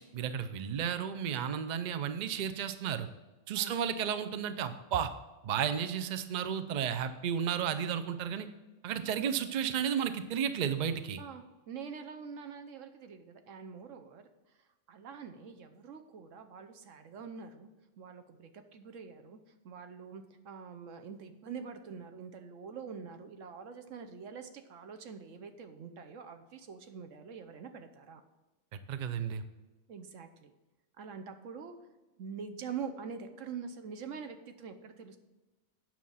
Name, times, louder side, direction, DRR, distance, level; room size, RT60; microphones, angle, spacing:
voice 1, 0.1-3.1 3.5-5.1 5.4-8.5 8.8-11.2 28.9-29.4, right 8 dB, 50° right, 10 dB, 0.6 m, -33 dB
voice 2, 11.2-14.2 14.9-17.7 18.0-19.4 19.6-28.2 29.9-30.5 31.0-31.7 32.2-35.2, right 6 dB, 85° right, 8 dB, 1.2 m, -45 dB
8.8 x 6.0 x 5.6 m, 1.1 s
omnidirectional pair, 1.3 m